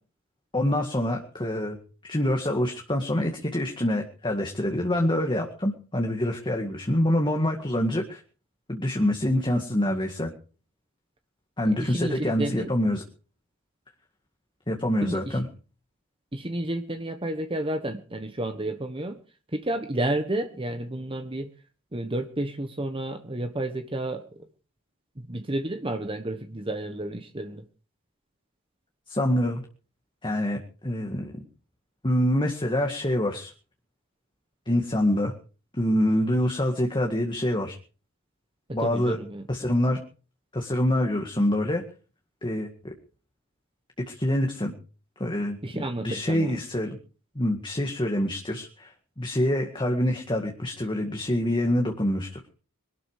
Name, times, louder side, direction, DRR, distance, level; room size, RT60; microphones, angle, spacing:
voice 1, 0.5-1.8 2.0-8.2 8.7-10.3 11.6-13.0 14.7-15.5 29.1-29.6 30.2-31.3 32.0-33.5 34.7-35.3 35.7-37.8 38.7-39.2 39.5-40.0 40.5-41.8 42.4-42.7 44.1-44.7 45.2-47.0 47.4-52.4, left 1 dB, 20° left, 2 dB, 2.0 m, -26 dB
voice 2, 11.8-12.7 15.0-15.4 16.3-19.2 19.5-21.5 21.9-24.2 25.2-27.6 38.7-39.5 45.6-46.6, right 1 dB, 25° right, 7 dB, 1.4 m, -31 dB
22.5 x 12.5 x 5.0 m, 0.39 s
head